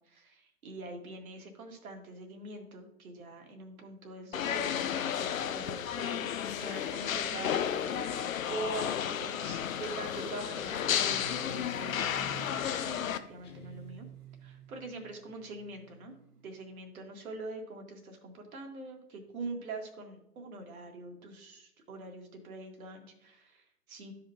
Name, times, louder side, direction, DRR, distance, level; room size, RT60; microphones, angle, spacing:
voice 1, 0.1-6.2 6.6-14.1 14.4-16.2 16.4-24.1, right 2 dB, 60° right, 3 dB, 2.0 m, -44 dB
sound 1, 4.3-13.2, left 9 dB, 60° left, 0.7 m, -33 dB
sound 2, 8.6-16.6, right 1 dB, 75° right, 1.5 m, -51 dB
Guitar, 13.4-15.1, right 7 dB, 15° left, 0.6 m, -50 dB
12.5 x 5.1 x 2.8 m, 0.80 s
hypercardioid pair, 135°, 47 cm